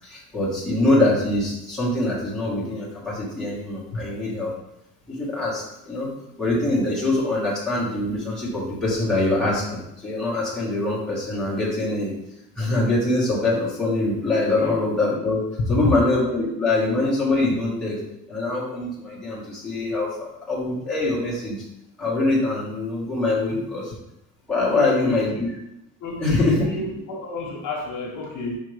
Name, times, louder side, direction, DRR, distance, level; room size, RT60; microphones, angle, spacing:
voice 1, 0.0-4.5 5.1-6.1 6.4-12.1 12.6-15.4 15.7-18.0 18.3-21.6 22.0-23.9 24.5-25.5 26.2-26.6, left 2 dB, ahead, -9 dB, 1.8 m, -23 dB
voice 2, 15.6-16.0 23.5-23.7 24.7-25.5 26.0-28.6, left 2 dB, 60° left, -1 dB, 1.5 m, -29 dB
5.6 x 5.2 x 3.5 m, 0.86 s
cardioid pair, 180°, 34 cm